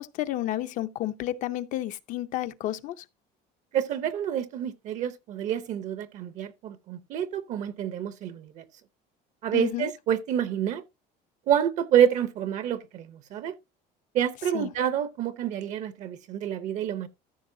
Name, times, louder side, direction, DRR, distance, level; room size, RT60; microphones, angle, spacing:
voice 1, 0.0-3.0 9.5-9.9 14.5-14.7, left 14 dB, 50° left, 0.6 m, -31 dB
voice 2, 3.7-8.6 9.4-10.8 11.5-13.5 14.1-17.1, right 9 dB, 45° right, 0.7 m, -28 dB
14.0 x 6.2 x 2.7 m
cardioid pair, 175°, 17 cm